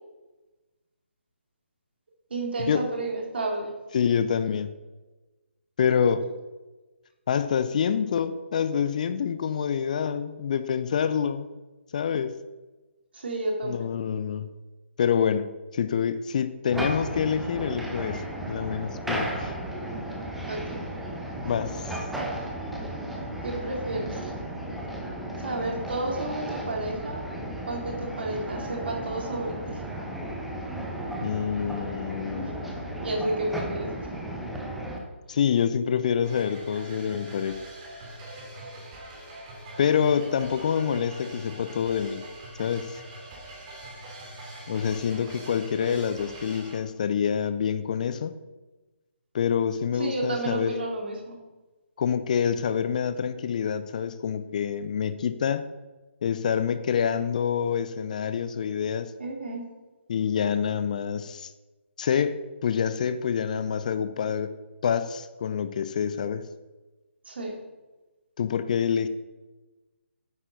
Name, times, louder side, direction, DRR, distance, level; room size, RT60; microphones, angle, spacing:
voice 1, 2.3-3.7 13.1-13.9 20.5-20.8 23.4-24.1 25.4-27.2 27.7-29.8 32.4-32.5 33.0-33.9 50.0-51.4 59.2-59.6 67.3-67.6, right 2 dB, 55° right, 0 dB, 2.7 m, -31 dB
voice 2, 3.9-4.7 5.8-6.3 7.3-11.5 11.9-12.4 13.6-14.5 15.0-15.5 15.7-19.5 21.4-22.0 31.2-32.5 35.3-37.6 39.8-42.2 42.6-43.0 44.7-48.3 49.3-50.7 52.0-55.6 56.2-59.1 60.1-61.5 62.0-64.5 64.8-66.5 68.4-69.1, left 7 dB, 35° left, 12 dB, 0.5 m, -26 dB
sound 1, 16.7-35.0, right 1 dB, ahead, 1.0 m, -34 dB
sound 2, 36.2-46.8, right 1 dB, 25° right, 2.8 m, -43 dB
9.6 x 9.2 x 4.0 m, 1.2 s
figure-of-eight pair, 145°, 7 cm